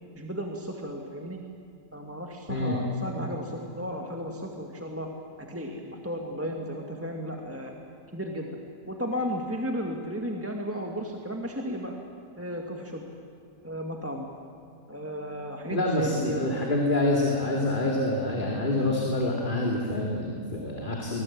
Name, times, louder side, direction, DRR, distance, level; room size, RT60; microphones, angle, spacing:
voice 1, 0.1-1.4 1.9-5.1 5.4-7.7 8.1-8.5 8.8-12.0 12.4-13.1 13.6-14.3 14.9-16.5, equal, 10° right, 1 dB, 1.7 m, -34 dB
voice 2, 2.5-2.8 15.7-21.2, left 2 dB, 30° left, -1 dB, 2.6 m, -27 dB
25.5 x 20.0 x 8.6 m, 2.4 s
omnidirectional pair, 1.6 m